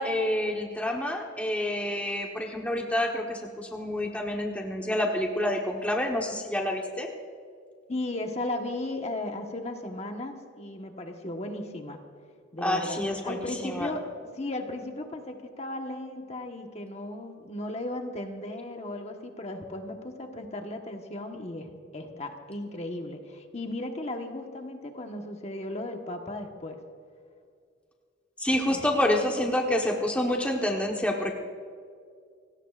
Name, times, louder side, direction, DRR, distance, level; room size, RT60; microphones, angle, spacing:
voice 1, 0.0-7.1 12.6-13.9 28.4-31.3, left 1 dB, 5° left, 0 dB, 1.1 m, -28 dB
voice 2, 7.9-12.0 12.5-14.1 14.4-26.8 28.7-28.9 29.4-29.5, left 1 dB, 35° left, 3 dB, 1.3 m, -36 dB
29.5 x 17.0 x 2.5 m, 2.3 s
head